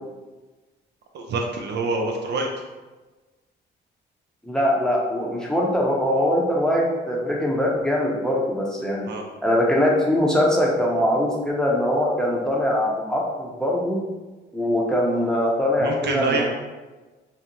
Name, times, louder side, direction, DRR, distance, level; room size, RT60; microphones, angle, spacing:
voice 1, 1.1-2.5 9.1-9.2 15.8-16.4, right 3 dB, 55° right, 1 dB, 0.4 m, -26 dB
voice 2, 4.4-9.1 9.4-14.0 14.5-16.4, left 1 dB, 5° left, -4 dB, 0.7 m, -22 dB
2.6 x 2.0 x 2.9 m, 1.2 s
supercardioid pair, 60°, 21 cm